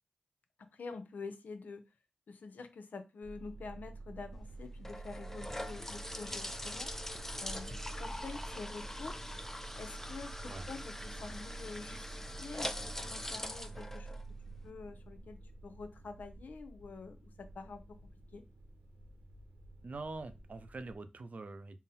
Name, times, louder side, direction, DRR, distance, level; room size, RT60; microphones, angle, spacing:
voice 1, 0.7-1.9 2.3-6.9 7.4-9.2 9.8-14.2 14.6-17.8 18.3-18.4, left 4 dB, 80° left, 0.6 m, -47 dB
sound 1, 3.2-21.0, right 3 dB, 90° right, 1.0 m, -49 dB
sound 2, 4.3-14.7, left 1 dB, 15° left, 0.4 m, -43 dB
voice 2, 19.8-21.8, right 3 dB, 60° right, 0.5 m, -44 dB
3.8 x 2.0 x 4.1 m
cardioid pair, 55°, 3 cm